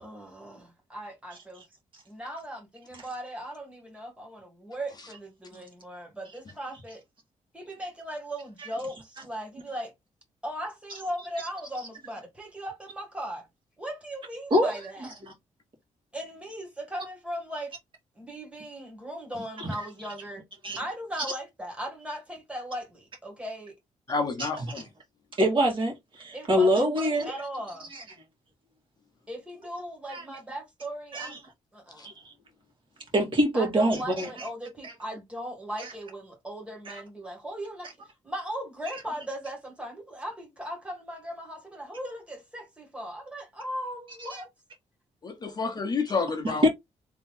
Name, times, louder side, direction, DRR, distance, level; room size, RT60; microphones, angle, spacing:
voice 1, 0.0-1.6 2.1-7.0 7.5-9.9 10.4-13.5 13.8-15.1 16.1-17.7 18.2-20.4 20.8-23.8 26.3-27.9 29.3-31.4 31.7-32.1 33.5-37.9 38.2-44.5, equal, 10° right, 1.9 m, -38 dB
voice 2, 14.5-15.1 19.6-19.9 20.6-20.8 24.4-24.5 25.4-27.3 27.9-28.0 30.1-30.2 31.1-31.4 32.0-32.3 33.1-34.5 34.8-34.9 35.8-35.9 36.9-37.0 44.3-44.4 46.4-46.7, equal, 40° right, 2.1 m, -25 dB
voice 3, 24.1-24.8 32.0-32.1 45.2-46.7, left 4 dB, 35° left, 0.9 m, -29 dB
3.6 x 3.0 x 3.8 m
cardioid pair, 130°, 12 cm